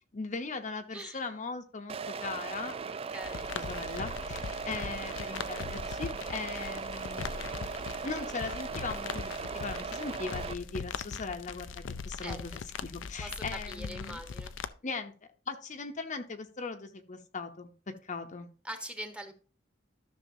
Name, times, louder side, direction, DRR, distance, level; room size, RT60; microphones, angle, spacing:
voice 1, 0.1-2.8 3.5-7.7 8.0-14.2 14.8-15.1 15.5-17.7 18.0-18.5, left 4 dB, 40° left, 6 dB, 0.8 m, -39 dB
voice 2, 0.9-1.2 2.8-3.5 12.2-12.6 13.0-14.5 18.6-19.3, right 1 dB, 5° right, 6 dB, 1.1 m, -43 dB
sound 1, 1.9-10.5, right 5 dB, 30° right, 0.4 m, -38 dB
sound 2, 3.2-14.7, left 5 dB, 90° left, 0.5 m, -40 dB
13.0 x 6.2 x 2.8 m, 0.37 s
head